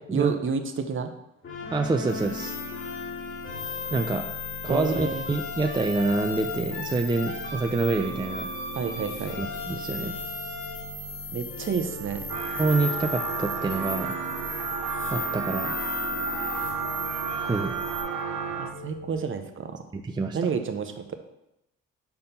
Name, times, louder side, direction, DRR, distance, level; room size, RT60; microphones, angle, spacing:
voice 1, 0.1-1.1 4.7-5.2 8.7-9.4 11.3-12.2 18.6-19.8 20.3-21.2, right 6 dB, 45° right, 8 dB, 0.8 m, -29 dB
sound 1, 1.4-19.1, left 3 dB, 40° left, 2.0 m, -38 dB
voice 2, 1.7-2.6 3.9-4.3 4.6-8.5 9.4-10.1 12.6-14.1 15.1-15.7 17.5-17.7 19.9-20.4, right 3 dB, 15° right, 5 dB, 0.4 m, -26 dB
sound 2, 2.1-18.0, left 3 dB, 85° left, 2.1 m, -38 dB
sound 3, 12.3-18.7, right 5 dB, 90° right, 0.7 m, -32 dB
5.6 x 4.2 x 5.2 m, 0.86 s
cardioid pair, 90°, 30 cm